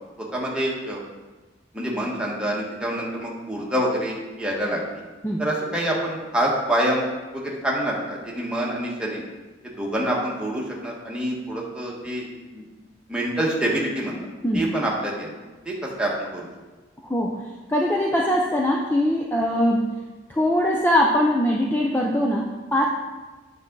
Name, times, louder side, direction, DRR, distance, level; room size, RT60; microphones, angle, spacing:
voice 1, 0.2-1.0 1.7-5.0 5.4-7.0 7.3-9.2 9.6-12.3 12.5-12.6 13.1-14.2 14.5-15.4 15.6-16.5, right 1 dB, 5° right, -4 dB, 1.5 m, -26 dB
voice 2, 17.0-17.4 17.7-19.9 20.3-22.9, left 1 dB, 10° left, -2 dB, 0.6 m, -21 dB
8.8 x 5.9 x 3.9 m, 1.2 s
head